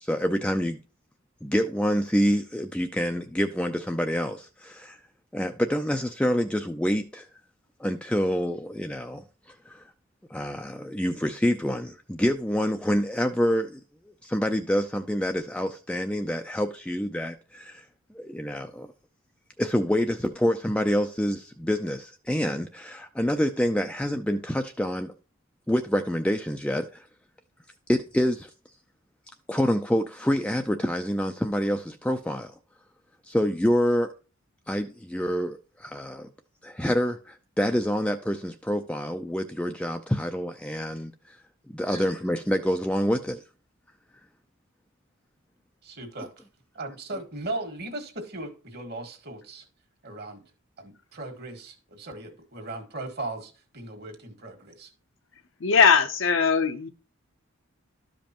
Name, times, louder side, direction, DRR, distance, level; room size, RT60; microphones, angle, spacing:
voice 1, 0.0-0.8 1.4-5.0 5.3-7.3 7.8-9.8 10.3-13.8 14.2-17.8 18.1-18.9 19.6-25.1 25.7-27.1 27.9-28.5 29.5-32.5 33.3-34.1 34.7-36.3 36.6-41.4 41.7-43.4, equal, 5° left, 0.4 m, -27 dB
voice 2, 45.8-46.3 46.7-49.7 50.0-50.4 50.8-54.9, right 2 dB, 50° right, 1.7 m, -37 dB
voice 3, 55.6-56.9, left 6 dB, 65° left, 0.7 m, -20 dB
12.5 x 5.2 x 2.9 m
head